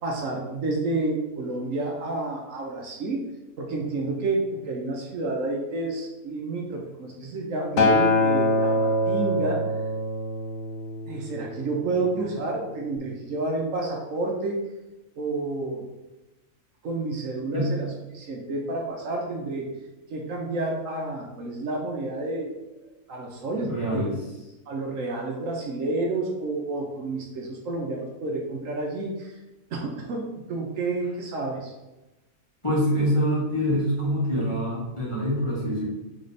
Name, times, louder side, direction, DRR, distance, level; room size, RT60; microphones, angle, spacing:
voice 1, 0.0-3.3 3.6-9.6 11.1-14.6 15.2-15.8 16.8-19.7 20.1-22.5 23.1-24.1 24.7-29.4 29.7-31.7, right 2 dB, 65° right, 0 dB, 1.0 m, -30 dB
Acoustic guitar, 7.8-12.1 12.9-13.0, left 1 dB, 60° left, 0.9 m, -24 dB
voice 2, 23.7-24.1 32.6-35.8, equal, 20° left, -8 dB, 1.5 m, -25 dB
4.1 x 3.2 x 4.0 m, 1.0 s
omnidirectional pair, 1.5 m